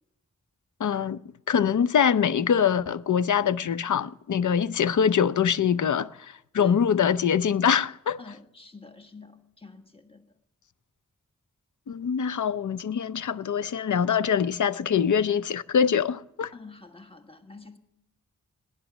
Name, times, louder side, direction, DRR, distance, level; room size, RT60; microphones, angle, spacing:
voice 1, 0.8-1.2 1.5-8.2 11.9-16.5, left 7 dB, 70° left, 0.6 m, -24 dB
voice 2, 8.2-10.3 16.5-17.8, left 3 dB, 15° left, 1.5 m, -47 dB
17.5 x 10.5 x 6.1 m
wide cardioid pair, 85°, 31 cm